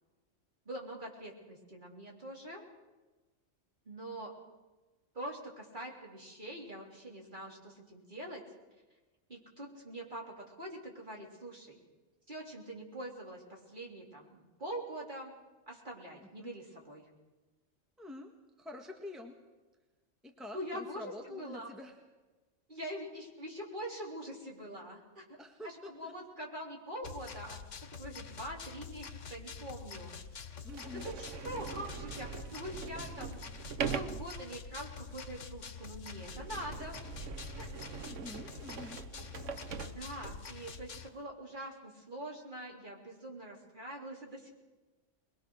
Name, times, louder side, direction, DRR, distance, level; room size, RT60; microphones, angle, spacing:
voice 1, 0.7-2.7 3.9-4.4 5.1-8.4 9.3-11.8 12.3-15.3 15.7-17.1 20.5-21.7 22.7-25.2 25.6-30.1 30.9-33.5 33.8-37.0 37.6-37.7 39.9-44.5, right 1 dB, 40° right, -1 dB, 3.9 m, -44 dB
voice 2, 18.0-18.3 18.6-19.4 20.2-22.0 25.4-26.1 30.6-31.1 38.0-39.0, left 2 dB, ahead, 2 dB, 1.6 m, -47 dB
sound 1, 27.0-41.1, left 6 dB, 85° left, 1.5 m, -47 dB
Sliding door, 29.3-29.4 30.1-30.2 30.7-40.6, right 6 dB, 85° right, 1.3 m, -43 dB
22.0 x 22.0 x 6.4 m, 1.2 s
omnidirectional pair, 1.2 m